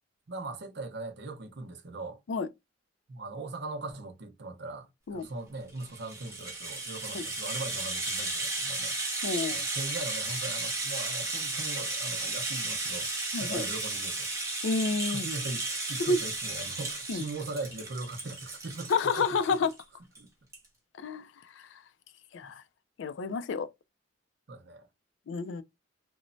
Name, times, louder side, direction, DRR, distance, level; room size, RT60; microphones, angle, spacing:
voice 1, 0.3-2.2 3.1-9.0 9.5-13.1 13.4-14.3 15.0-19.4 20.2-20.3 22.4-22.5 24.5-24.9, right 2 dB, 55° right, 0.6 m, -40 dB
Rattle (instrument), 5.7-19.8 20.1-20.2 20.5-20.7, right 2 dB, 15° right, 0.9 m, -34 dB
voice 2, 9.2-9.7 13.3-13.6 14.6-15.3 16.0-16.2 17.1-17.2 18.9-19.7 21.0-21.3 22.3-22.6 23.0-23.7 25.3-25.6, left 4 dB, 65° left, 0.3 m, -29 dB
3.1 x 2.0 x 2.5 m
head